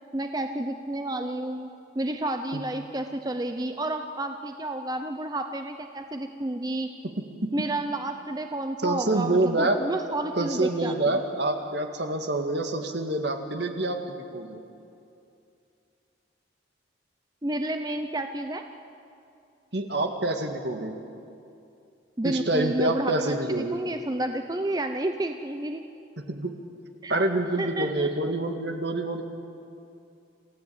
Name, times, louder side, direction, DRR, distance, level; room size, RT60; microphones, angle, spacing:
voice 1, 0.1-1.7 1.9-6.9 7.5-11.1 17.4-18.6 22.2-25.8 27.0-27.2 27.6-28.1, right 1 dB, 20° right, 6 dB, 0.7 m, -30 dB
voice 2, 8.8-9.8 10.4-14.6 19.7-20.9 22.2-23.8 26.3-26.5 27.1-29.2, right 2 dB, 60° right, 5 dB, 2.1 m, -27 dB
27.5 x 16.0 x 8.7 m, 2.6 s
head